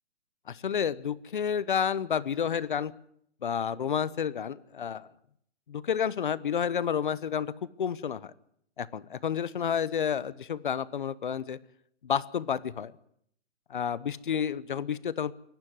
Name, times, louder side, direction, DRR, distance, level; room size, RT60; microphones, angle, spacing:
voice 1, 0.5-2.9 3.4-5.1 5.7-7.5 7.8-8.3 8.8-11.6 12.0-12.9 13.7-15.3, left 8 dB, 45° left, 19 dB, 0.9 m, -30 dB
24.5 x 12.0 x 9.5 m, 0.69 s
hypercardioid pair, 175°, 35 cm